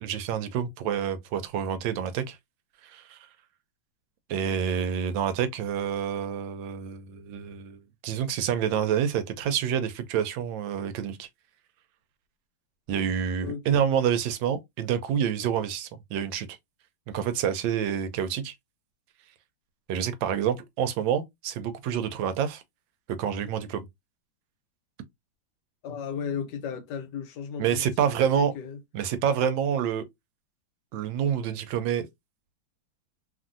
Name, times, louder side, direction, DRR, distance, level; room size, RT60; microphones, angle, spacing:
voice 1, 0.0-2.4 2.8-3.2 4.3-11.3 12.9-16.5 17.1-18.5 19.9-22.6 23.1-23.9 27.6-28.5 28.9-30.1 30.9-32.1, right 8 dB, 80° right, 1.3 m, -28 dB
voice 2, 13.4-13.9 25.8-27.9 28.4-28.8, left 7 dB, 70° left, 1.2 m, -34 dB
2.9 x 2.6 x 2.5 m
omnidirectional pair, 2.0 m